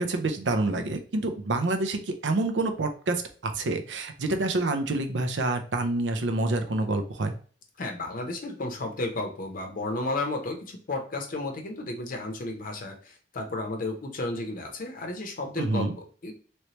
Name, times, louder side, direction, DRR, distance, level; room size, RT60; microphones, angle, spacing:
voice 1, 0.0-7.3 15.6-15.9, right 2 dB, 90° right, 7 dB, 0.6 m, -27 dB
voice 2, 7.8-16.3, left 2 dB, 50° left, 4 dB, 0.6 m, -33 dB
3.1 x 3.1 x 2.8 m, 0.43 s
head